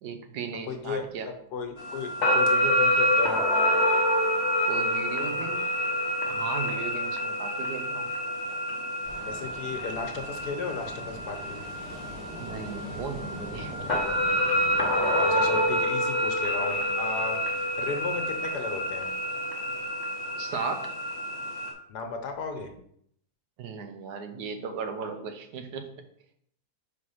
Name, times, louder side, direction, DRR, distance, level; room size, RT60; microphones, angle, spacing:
voice 1, 0.0-1.3 4.7-5.6 6.2-8.1 12.4-14.0 20.4-20.9 23.6-25.9, right 5 dB, 80° right, 7 dB, 1.3 m, -36 dB
voice 2, 0.7-3.5 9.3-11.6 15.2-19.1 21.9-22.7, left 4 dB, 75° left, 5 dB, 1.4 m, -35 dB
sound 1, 1.8-21.7, equal, 35° left, 0.9 m, -27 dB
Ocean, 9.0-15.8, equal, 40° right, 2.5 m, -42 dB
4.7 x 4.1 x 5.5 m, 0.70 s
omnidirectional pair, 1.7 m